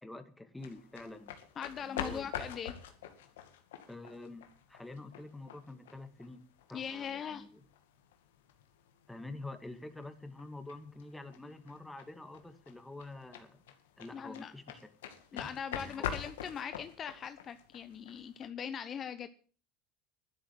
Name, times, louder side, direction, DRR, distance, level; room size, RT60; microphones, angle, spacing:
voice 1, 0.0-1.3 1.8-2.3 3.9-6.4 6.7-7.6 9.1-13.6 14.0-14.9 15.3-15.5 15.8-16.2, left 2 dB, 5° left, 8 dB, 2.2 m, -47 dB
sound 1, 0.6-18.5, left 9 dB, 85° left, 2.1 m, -45 dB
voice 2, 1.6-2.7 6.7-7.4 14.1-14.5 15.3-19.3, left 8 dB, 40° left, 12 dB, 0.8 m, -41 dB
12.0 x 10.5 x 7.6 m, 0.42 s
supercardioid pair, 95°, 0 cm